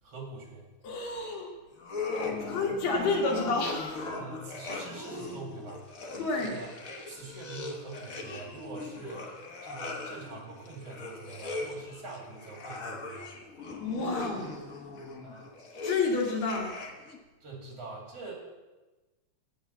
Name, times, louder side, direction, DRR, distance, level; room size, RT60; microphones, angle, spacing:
voice 1, 0.0-0.7 2.3-2.6 4.1-6.1 6.4-6.7 7.1-13.3 15.2-15.5 17.4-18.3, right 3 dB, 55° right, -1 dB, 3.2 m, -44 dB
voice 2, 0.8-1.5 2.4-4.1 6.2-6.6 13.8-14.6 15.8-16.8, left 3 dB, 65° left, 0 dB, 2.7 m, -30 dB
sound 1, 1.8-17.2, left 3 dB, 90° left, 0.7 m, -39 dB
8.5 x 6.9 x 8.2 m, 1.2 s
omnidirectional pair, 3.3 m